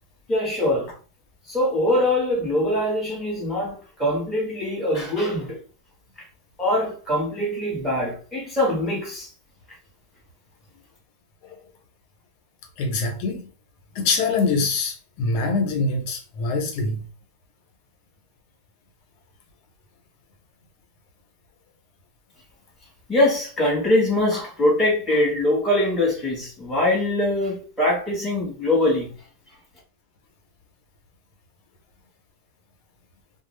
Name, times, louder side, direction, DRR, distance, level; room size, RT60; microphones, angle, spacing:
voice 1, 0.3-0.9 1.5-5.6 6.6-9.3 23.1-29.1, left 1 dB, ahead, 0.9 m, -23 dB
voice 2, 12.8-13.5 13.9-17.0, left 3 dB, 85° left, 1.2 m, -24 dB
2.6 x 2.3 x 3.1 m
omnidirectional pair, 1.7 m